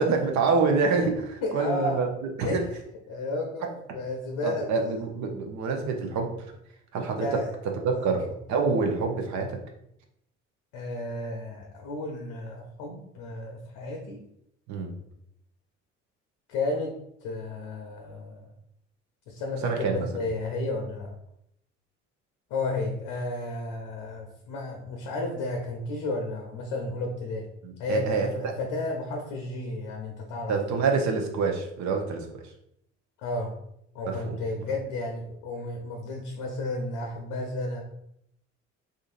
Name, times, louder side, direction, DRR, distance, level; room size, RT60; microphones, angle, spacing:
voice 1, 0.0-2.1 2.4-2.6 4.4-6.3 6.9-7.3 7.8-9.6 14.7-14.9 19.6-20.0 27.6-28.5 30.5-32.3 34.3-34.4, right 4 dB, 50° right, 3 dB, 0.8 m, -26 dB
voice 2, 1.4-2.0 2.4-2.6 3.1-4.9 7.1-7.5 7.9-8.2 10.7-14.2 16.5-16.9 17.2-18.5 19.3-21.1 22.5-27.5 27.8-30.5 33.2-33.6 33.9-37.8, left 2 dB, 65° left, 2 dB, 0.7 m, -32 dB
3.8 x 2.6 x 2.5 m, 0.76 s
hypercardioid pair, 55°, 35 cm